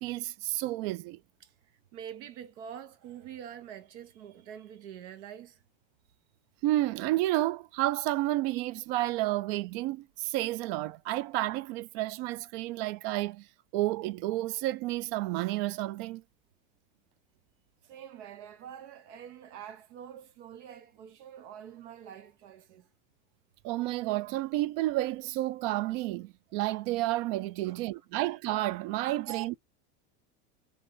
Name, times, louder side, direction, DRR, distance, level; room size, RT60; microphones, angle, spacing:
voice 1, 0.0-1.2 6.6-13.5 13.7-16.2 23.6-29.6, right 16 dB, 55° right, 0.4 m, -31 dB
voice 2, 1.9-5.6 17.9-22.9 27.6-27.8 29.3-29.4, right 9 dB, 85° right, 1.3 m, -45 dB
3.5 x 3.3 x 3.8 m
cardioid pair, 160°, 34 cm